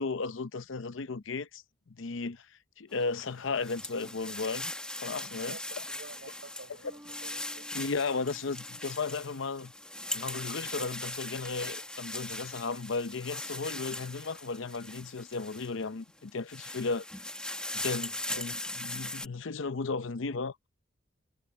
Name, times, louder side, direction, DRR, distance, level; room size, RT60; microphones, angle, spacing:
voice 1, 0.0-2.5 2.8-4.7 5.0-5.6 7.7-9.7 10.1-17.1 17.7-20.7, left 4 dB, 75° left, 0.7 m, -35 dB
sound 1, 3.0-15.8 16.3-19.3, left 1 dB, 5° left, 1.4 m, -40 dB
voice 2, 5.2-7.7 18.3-18.5, right 2 dB, 70° right, 5.5 m, -50 dB
Bass guitar, 6.8-10.4, equal, 10° right, 5.5 m, -57 dB
head